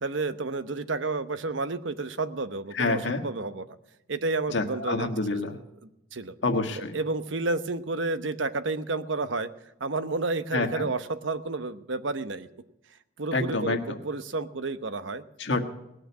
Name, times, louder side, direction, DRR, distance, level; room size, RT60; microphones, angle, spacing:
voice 1, 0.0-3.8 4.1-5.4 6.1-6.3 6.8-9.5 9.8-12.5 13.2-15.2, right 3 dB, 80° right, 11 dB, 0.9 m, -31 dB
voice 2, 2.7-3.2 4.5-5.6 6.4-7.0 10.5-10.9 13.3-14.0 15.4-15.6, left 3 dB, 70° left, 5 dB, 1.6 m, -27 dB
19.5 x 6.6 x 9.6 m, 0.88 s
head